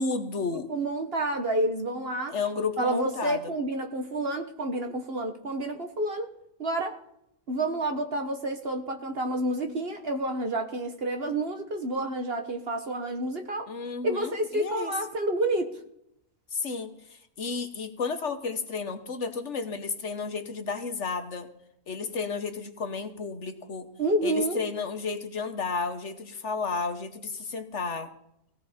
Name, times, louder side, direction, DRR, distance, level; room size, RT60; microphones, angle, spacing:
voice 1, 0.0-0.7 2.3-3.5 13.7-15.0 16.5-21.5 21.9-23.9 24.2-28.1, left 4 dB, 55° left, 8 dB, 1.3 m, -32 dB
voice 2, 0.7-2.3 2.8-6.3 6.6-7.0 7.5-13.7 14.0-15.8 24.0-24.6, right 1 dB, 45° right, 5 dB, 1.3 m, -29 dB
18.0 x 16.5 x 4.3 m, 0.79 s
omnidirectional pair, 1.6 m